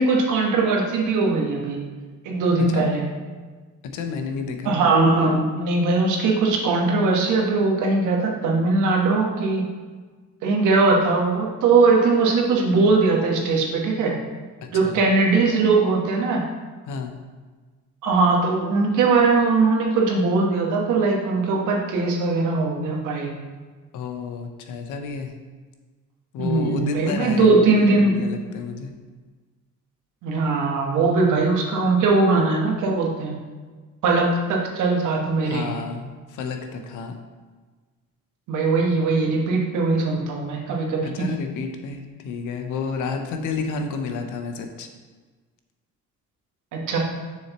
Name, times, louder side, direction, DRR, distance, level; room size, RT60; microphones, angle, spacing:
voice 1, 0.0-1.8 2.2-3.0 4.6-9.7 10.4-14.2 14.7-16.4 18.0-23.3 26.4-28.2 30.2-33.3 34.0-35.6 38.5-41.3 46.7-47.0, right 3 dB, 90° right, -1 dB, 1.3 m, -20 dB
voice 2, 3.8-4.7 14.6-15.0 16.8-17.2 23.9-25.3 26.3-28.9 35.4-37.2 41.0-44.9, left 5 dB, 85° left, 5 dB, 0.9 m, -31 dB
7.2 x 6.3 x 3.0 m, 1.4 s
cardioid pair, 90°, 30 cm